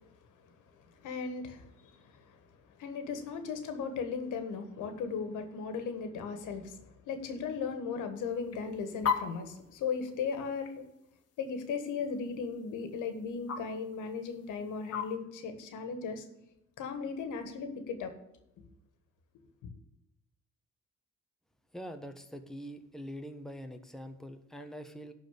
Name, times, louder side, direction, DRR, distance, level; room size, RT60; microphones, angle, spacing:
voice 1, 1.0-2.3 2.8-10.9 11.4-16.2 16.8-18.1 18.6-18.7, left 5 dB, 85° left, 8 dB, 1.7 m, -37 dB
sound 1, 8.3-15.2, left 7 dB, 55° left, 1.6 m, -40 dB
voice 2, 21.7-25.1, equal, ahead, 6 dB, 1.3 m, -44 dB
11.5 x 4.5 x 8.3 m, 0.83 s
cardioid pair, 90°, 30 cm